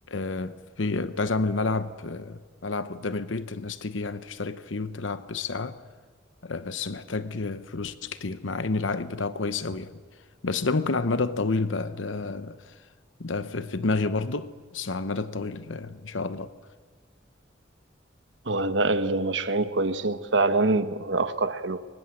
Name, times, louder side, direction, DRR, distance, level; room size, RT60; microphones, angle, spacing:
voice 1, 0.1-5.8 6.4-9.9 10.4-12.7 13.2-16.5, left 3 dB, 85° left, 0.9 m, -30 dB
voice 2, 18.5-21.9, right 3 dB, 70° right, 1.2 m, -25 dB
23.5 x 20.0 x 7.8 m
head